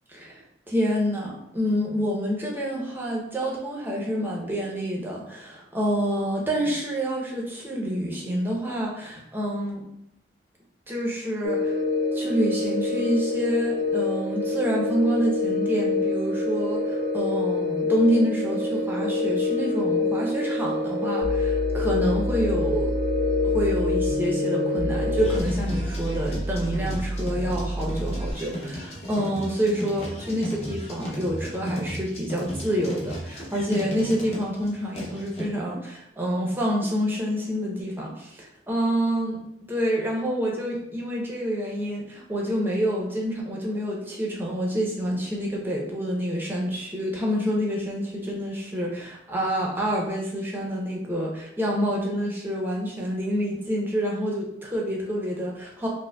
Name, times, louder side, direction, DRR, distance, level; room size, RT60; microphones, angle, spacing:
voice 1, 0.1-9.8 10.9-11.8 12.1-22.9 23.4-39.4 39.7-55.9, equal, 10° right, -3 dB, 0.6 m, -27 dB
sound 1, 11.4-25.4, left 3 dB, 85° right, 0.4 m, -26 dB
sound 2, 21.2-28.3, left 1 dB, 85° left, 0.4 m, -30 dB
sound 3, 25.2-35.5, equal, 35° left, 0.7 m, -35 dB
4.7 x 2.1 x 2.2 m, 0.80 s
head